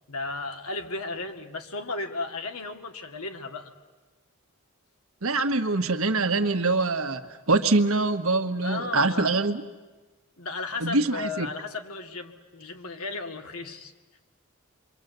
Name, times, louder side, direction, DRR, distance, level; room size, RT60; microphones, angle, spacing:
voice 1, 0.1-3.7 8.6-9.4 10.4-13.9, left 3 dB, 90° left, 4 dB, 2.2 m, -35 dB
voice 2, 5.2-9.6 10.8-11.5, right 3 dB, 70° right, 7 dB, 1.4 m, -24 dB
28.0 x 23.5 x 8.1 m, 1.3 s
head